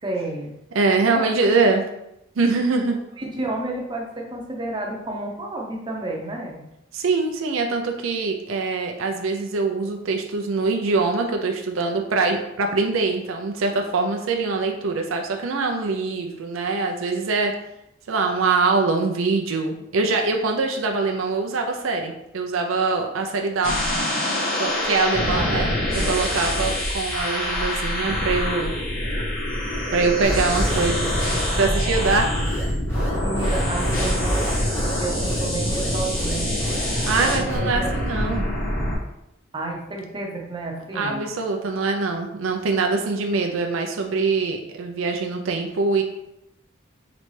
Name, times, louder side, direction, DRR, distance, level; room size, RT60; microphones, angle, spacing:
voice 1, 0.0-0.5 1.1-1.3 3.2-6.6 25.2-26.2 33.1-36.5 37.2-38.0 39.5-41.3, right 2 dB, 25° right, 0 dB, 0.7 m, -31 dB
voice 2, 0.7-1.8 2.4-3.0 6.9-17.5 18.1-23.8 24.6-28.7 29.9-31.1 31.5-32.3 37.1-38.5 40.9-46.0, right 3 dB, 90° right, 3 dB, 0.5 m, -23 dB
sound 1, 23.6-39.0, left 1 dB, 80° left, 1.5 m, -25 dB
sound 2, 30.2-37.6, right 1 dB, 10° left, 0.9 m, -29 dB
3.9 x 3.2 x 3.2 m, 0.83 s
head